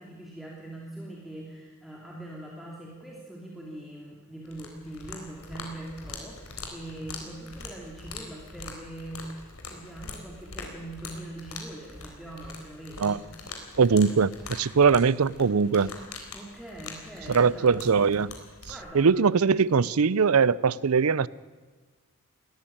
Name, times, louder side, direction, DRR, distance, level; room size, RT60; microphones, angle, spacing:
voice 1, 0.0-9.2 9.7-13.6 16.3-17.9 18.7-19.1, right 1 dB, ahead, 2.9 m, -42 dB
sound 1, 4.5-18.8, left 3 dB, 85° left, 3.9 m, -43 dB
voice 2, 13.8-15.9 17.3-18.3 18.9-21.3, right 5 dB, 85° right, 0.6 m, -21 dB
20.0 x 14.5 x 8.9 m
head